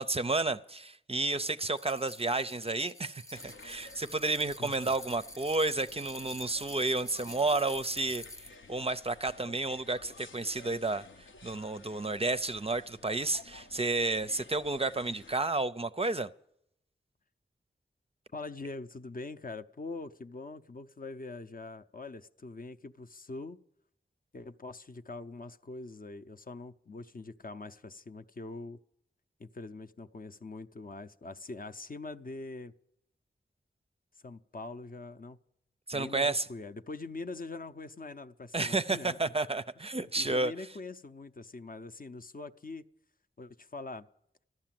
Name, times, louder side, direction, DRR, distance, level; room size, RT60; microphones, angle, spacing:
voice 1, 0.0-8.2 8.7-11.1 11.4-16.3 35.9-36.5 38.5-40.5, right 2 dB, 30° right, 0.5 m, -31 dB
sound 1, 1.8-8.5, left 1 dB, 15° left, 0.8 m, -48 dB
sound 2, 3.3-15.4, left 3 dB, 80° left, 0.8 m, -54 dB
voice 2, 4.6-4.9 18.3-23.6 24.3-28.8 29.4-32.7 34.2-35.4 35.9-39.3 39.9-42.8 43.4-44.1, left 3 dB, 45° left, 0.6 m, -43 dB
14.0 x 11.5 x 7.6 m
wide cardioid pair, 75°, 20 cm